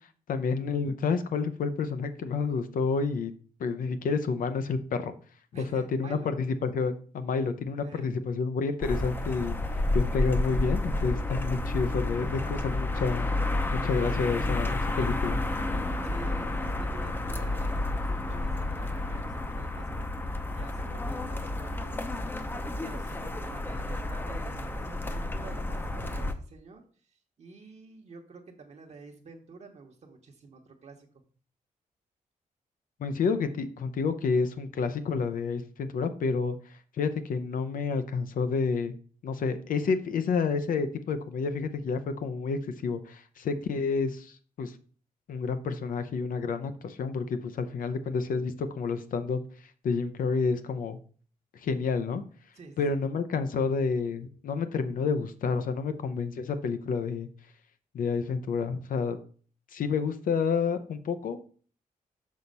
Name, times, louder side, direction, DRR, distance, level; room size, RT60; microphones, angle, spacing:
voice 1, 0.3-3.3 3.6-5.1 5.5-9.6 9.9-13.3 13.7-15.4 33.0-38.9 39.2-44.8 45.3-49.4 49.8-51.0 51.5-52.2 52.8-57.3 57.9-59.2 59.7-61.4, left 5 dB, 70° left, 10 dB, 0.6 m, -29 dB
voice 2, 5.5-6.3 7.8-8.1 16.0-20.1 20.5-22.3 22.8-31.2 52.5-53.0, right 4 dB, 50° right, 2 dB, 1.1 m, -49 dB
sound 1, 8.8-26.3, left 2 dB, 15° left, 0.6 m, -30 dB
6.4 x 4.1 x 5.3 m, 0.43 s
wide cardioid pair, 120°, 15 cm